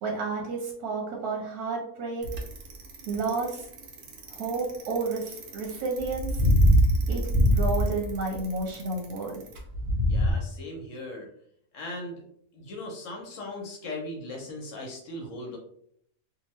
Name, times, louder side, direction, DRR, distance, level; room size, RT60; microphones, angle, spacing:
voice 1, 0.0-2.3 3.1-3.7 4.3-6.3 7.1-7.2 7.5-9.4, right 3 dB, 80° right, -1 dB, 1.2 m, -31 dB
Bicycle, 2.2-10.3, equal, 60° right, 0.9 m, -24 dB
voice 2, 10.1-11.3 11.7-12.2 12.5-15.6, left 1 dB, 65° left, 0 dB, 0.9 m, -38 dB
2.8 x 2.3 x 3.0 m, 0.68 s
omnidirectional pair, 1.6 m